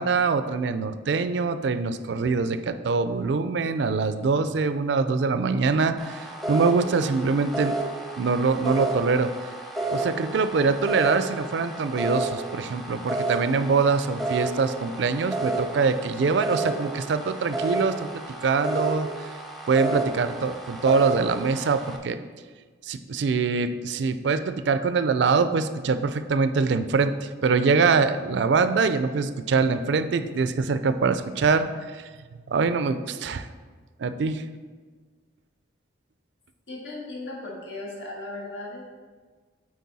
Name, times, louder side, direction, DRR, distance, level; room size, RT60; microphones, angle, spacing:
voice 1, 0.0-7.8 8.2-9.3 9.9-19.1 19.7-22.2 22.8-32.0 32.5-33.5 34.0-34.4, right 4 dB, 70° right, 11 dB, 0.4 m, -24 dB
sound 1, 6.0-22.0, right 2 dB, ahead, 0.6 m, -31 dB
voice 2, 36.7-38.8, left 2 dB, 85° left, -2 dB, 1.7 m, -36 dB
8.4 x 4.4 x 4.1 m, 1.5 s
head